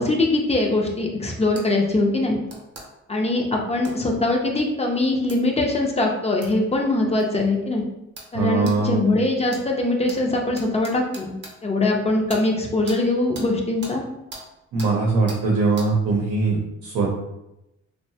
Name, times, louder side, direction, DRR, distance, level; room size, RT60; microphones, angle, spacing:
voice 1, 0.0-2.4 3.1-7.8 8.3-11.3 11.6-14.0, left 2 dB, 20° left, 1 dB, 0.5 m, -22 dB
sound 1, 1.6-1.7 2.5-2.9 3.8-4.0 5.3-5.4 6.4-6.5 7.2-7.3 8.2-8.3 8.7-8.8 9.5-9.6 10.1-10.2 10.6-11.5 12.3-12.4 12.9-13.0 13.3-13.5 13.8-14.0 14.3-14.4 14.8-14.9 15.3-15.4 15.8-15.9, right 2 dB, 35° right, 0.7 m, -39 dB
voice 2, 8.3-9.1 14.7-17.1, right 3 dB, 80° right, -2 dB, 0.7 m, -21 dB
2.7 x 2.1 x 2.7 m, 0.89 s
cardioid pair, 90°, 30 cm